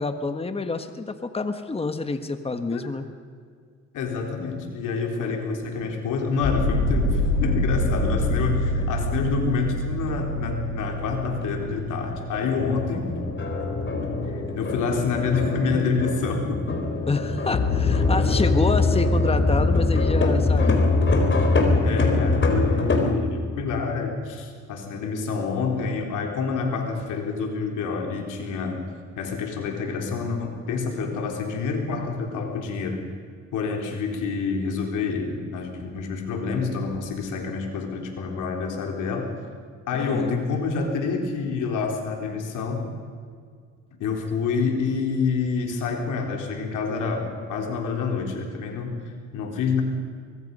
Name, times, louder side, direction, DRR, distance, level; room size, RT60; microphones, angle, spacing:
voice 1, 0.0-3.1 17.1-20.9 40.0-40.4, left 3 dB, 20° left, 9 dB, 1.4 m, -27 dB
voice 2, 3.9-13.1 14.3-16.8 21.8-28.8 29.2-33.0 33.5-39.3 39.9-42.9 44.0-49.8, left 4 dB, 85° left, 2 dB, 3.9 m, -27 dB
sound 1, 6.4-14.2 17.5-23.6, left 2 dB, 60° left, 6.5 m, -25 dB
sound 2, 6.9-23.1, left 3 dB, 40° left, 3.8 m, -27 dB
24.0 x 22.5 x 5.5 m, 2.1 s
cardioid pair, 90°, 30 cm